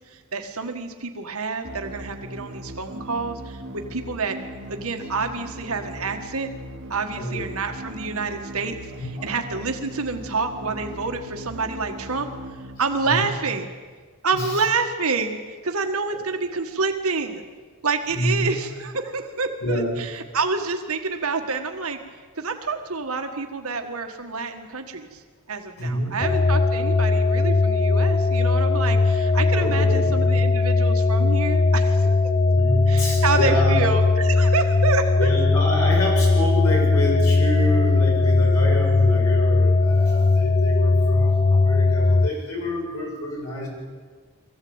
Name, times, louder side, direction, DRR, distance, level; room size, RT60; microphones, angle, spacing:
voice 1, 0.1-4.4 4.7-6.5 6.9-12.3 12.8-13.7 14.2-17.4 17.8-22.0 22.4-25.2 25.5-32.1 32.9-35.3, right 4 dB, 75° right, 5 dB, 1.7 m, -28 dB
sound 1, 1.6-13.6, right 1 dB, 50° right, 2.7 m, -39 dB
voice 2, 8.9-9.3 13.1-13.3 14.3-14.6 18.1-18.4 19.6-20.0 25.8-26.1 29.6-30.1 32.5-33.8 35.2-43.7, equal, 85° left, -2 dB, 7.8 m, -27 dB
sound 2, 26.2-42.3, left 3 dB, 30° left, 0.5 m, -19 dB
22.5 x 15.5 x 8.9 m, 1.5 s
head